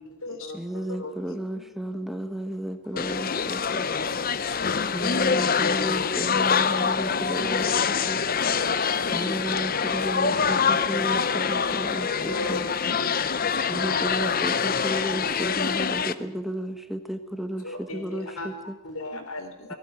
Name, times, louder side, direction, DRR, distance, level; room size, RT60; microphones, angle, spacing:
voice 1, 0.0-1.1 2.9-3.0 5.1-5.8 7.1-7.6 9.9-10.0 10.5-10.6 12.3-13.1 13.8-14.1 15.2-15.3 15.6-15.7 17.6-19.8, left 2 dB, 80° left, 5 dB, 4.3 m, -37 dB
voice 2, 0.5-3.8 4.9-8.2 9.1-12.7 13.7-18.8, right 1 dB, ahead, 7 dB, 1.5 m, -33 dB
voice 3, 1.3-1.6 4.0-5.1 8.4-9.3 9.9-10.1 10.6-11.1 19.1-19.7, left 3 dB, 65° left, 5 dB, 3.0 m, -45 dB
sound 1, 3.0-16.1, left 6 dB, 40° left, 0.7 m, -25 dB
19.0 x 17.0 x 9.2 m, 0.97 s
head